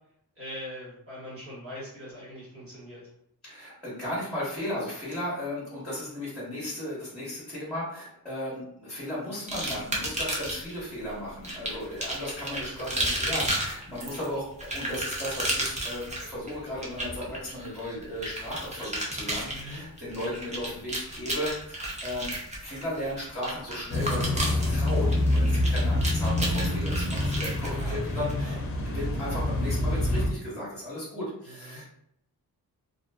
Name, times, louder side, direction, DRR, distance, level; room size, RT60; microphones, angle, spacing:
voice 1, 0.3-3.0 19.5-19.8 27.6-28.6 31.4-31.8, left 1 dB, 35° right, -7 dB, 1.2 m, -42 dB
voice 2, 3.4-22.3 22.6-28.6 28.8-31.9, left 1 dB, ahead, -10 dB, 1.0 m, -35 dB
sound 1, 9.5-10.8 11.4-28.3, right 1 dB, 20° right, 0.5 m, -33 dB
sound 2, 23.9-30.3, left 1 dB, 40° left, 0.5 m, -26 dB
2.4 x 2.3 x 2.2 m, 0.72 s
wide cardioid pair, 155°, 37 cm